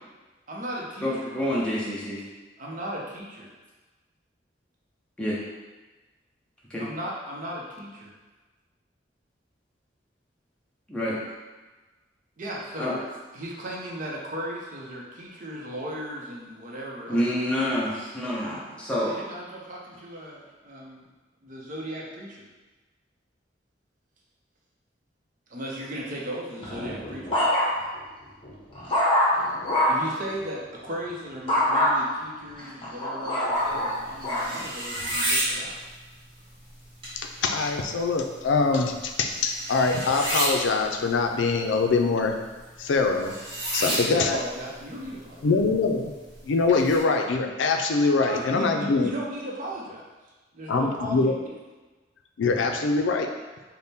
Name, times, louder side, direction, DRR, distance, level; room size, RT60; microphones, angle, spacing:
voice 1, 0.5-1.5 2.6-3.5 6.8-8.1 12.4-13.0 13.3-17.2 19.0-21.0 21.4-22.5 25.5-27.4 29.9-35.8 43.8-45.6 48.3-50.1 50.5-51.4, equal, 45° right, -3 dB, 0.7 m, -36 dB
voice 2, 1.0-2.3 5.2-5.4 6.7-6.9 10.9-11.2 12.8-13.0 17.1-19.2, equal, 5° left, -7 dB, 0.5 m, -27 dB
sound 1, 26.6-28.0 28.4-30.1 31.5-31.9 32.6-34.5 35.1-35.5, left 1 dB, 30° left, 0.8 m, -24 dB
sound 2, 33.5-47.0, right 1 dB, 30° right, 1.1 m, -33 dB
voice 3, 37.4-42.3 42.8-43.3 43.7-44.4 45.4-46.1 46.4-49.1 50.7-51.3 52.4-53.3, left 4 dB, 85° left, 4 dB, 0.4 m, -23 dB
3.5 x 2.1 x 4.1 m, 1.2 s
head